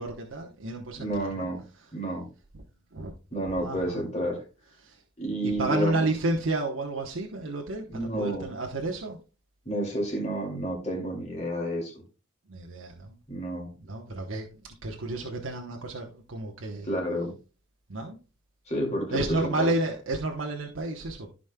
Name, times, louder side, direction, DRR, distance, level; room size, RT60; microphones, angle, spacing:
voice 1, 0.0-1.5 2.9-3.1 3.5-4.0 4.8-5.0 5.4-9.2 12.5-13.2 13.8-16.9 17.9-18.2 19.1-21.3, right 2 dB, 90° right, 1.0 m, -31 dB
voice 2, 0.9-1.6 1.9-2.3 3.3-4.4 5.2-6.1 7.9-8.6 9.7-12.0 13.3-13.7 16.9-17.3 18.7-19.7, right 1 dB, 35° left, 2.4 m, -30 dB
14.5 x 5.1 x 2.2 m
head